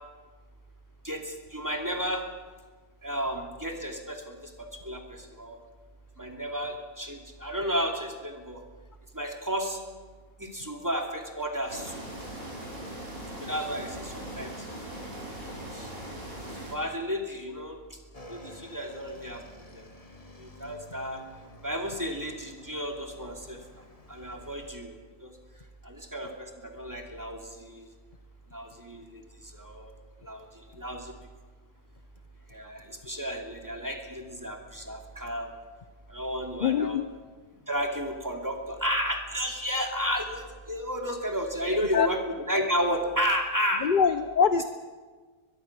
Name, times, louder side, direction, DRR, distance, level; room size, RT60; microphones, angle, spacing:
voice 1, 1.0-2.3 3.0-5.6 6.2-8.6 9.1-9.8 10.4-12.0 13.4-14.7 15.5-15.9 16.6-18.0 18.3-19.4 19.7-19.9 20.4-21.2 21.6-25.4 25.8-27.9 28.5-29.9 30.2-31.1 32.5-35.5 36.1-37.0 37.7-43.9, equal, 10° right, 1 dB, 2.7 m, -33 dB
sound 1, 11.7-16.7, right 1 dB, 40° right, 5.8 m, -40 dB
Motorcycle / Engine, 18.1-24.7, equal, 25° left, 1.7 m, -51 dB
voice 2, 36.6-37.0 41.7-42.1 43.8-44.6, left 6 dB, 45° left, 10 dB, 0.8 m, -24 dB
22.5 x 22.0 x 6.2 m, 1.4 s
omnidirectional pair, 1.5 m